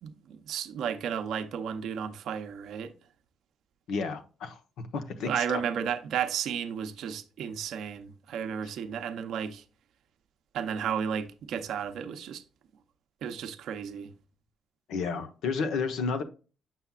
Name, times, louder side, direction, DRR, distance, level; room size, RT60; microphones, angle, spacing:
voice 1, 0.0-2.9 5.2-9.6 10.5-12.4 13.2-14.1, right 8 dB, 75° right, 0.7 m, -33 dB
voice 2, 3.9-4.6 4.9-5.6 14.9-16.2, left 5 dB, 80° left, 1.0 m, -31 dB
7.5 x 5.8 x 2.4 m
cardioid pair, 90°, 0 cm